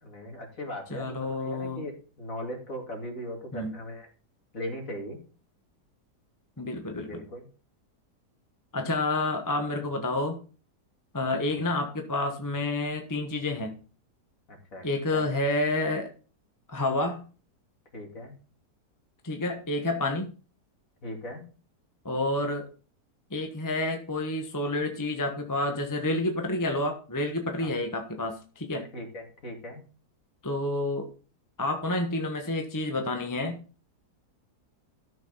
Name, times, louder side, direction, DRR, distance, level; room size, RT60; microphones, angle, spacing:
voice 1, 0.0-4.1 4.5-5.2 7.0-7.4 11.5-11.6 14.5-14.9 15.1-15.4 17.9-18.3 21.0-21.4 27.6-27.7 28.9-29.8, equal, 50° left, 2 dB, 2.9 m, -39 dB
voice 2, 0.9-1.8 3.5-3.8 6.6-7.2 8.7-10.4 11.1-13.8 14.8-16.1 16.7-17.2 19.2-20.3 22.0-22.7 23.3-28.8 30.4-31.1 31.6-33.6, left 2 dB, 15° left, 4 dB, 1.1 m, -29 dB
13.5 x 6.4 x 4.0 m, 0.38 s
omnidirectional pair, 1.8 m